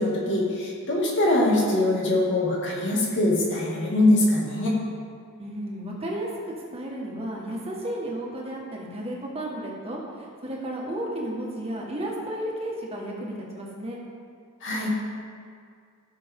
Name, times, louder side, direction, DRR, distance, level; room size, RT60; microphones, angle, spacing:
voice 1, 0.0-4.8 14.6-14.9, left 1 dB, 55° left, -4 dB, 2.5 m, -23 dB
voice 2, 5.4-10.0 10.4-14.0, right 1 dB, 25° right, -3 dB, 1.7 m, -33 dB
16.0 x 6.4 x 3.8 m, 2.2 s
head